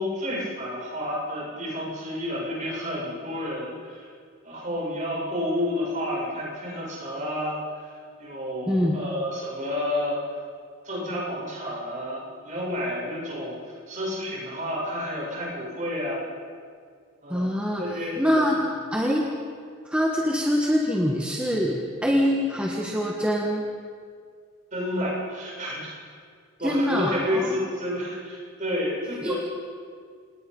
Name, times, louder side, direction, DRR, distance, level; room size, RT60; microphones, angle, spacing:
voice 1, 0.0-4.1 4.4-10.4 10.8-16.2 17.2-17.5 17.8-18.3 24.7-25.9 26.6-29.4, left 1 dB, 35° right, -4 dB, 7.6 m, -30 dB
voice 2, 17.3-17.8 18.2-18.6 18.9-19.2 19.8-23.6 26.6-27.6 29.2-29.3, equal, 5° right, -2 dB, 1.6 m, -24 dB
27.5 x 20.0 x 5.6 m, 2.1 s
head